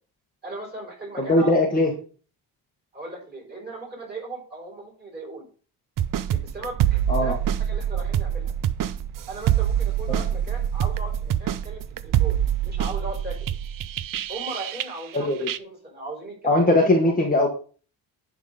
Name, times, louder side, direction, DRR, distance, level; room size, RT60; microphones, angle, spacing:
voice 1, 0.4-1.9 2.9-5.5 6.3-8.5 9.3-13.5 14.3-16.7 17.0-17.3, right 2 dB, 20° right, -2 dB, 4.6 m, -38 dB
voice 2, 1.2-1.9 7.1-7.3 10.1-10.2 15.1-15.4 16.4-17.5, left 2 dB, 20° left, 1 dB, 1.3 m, -20 dB
sound 1, 6.0-15.2 15.5-15.6, right 10 dB, 50° right, 0.5 m, -25 dB
11.0 x 3.8 x 5.0 m, 0.39 s
cardioid pair, 140°, 45 cm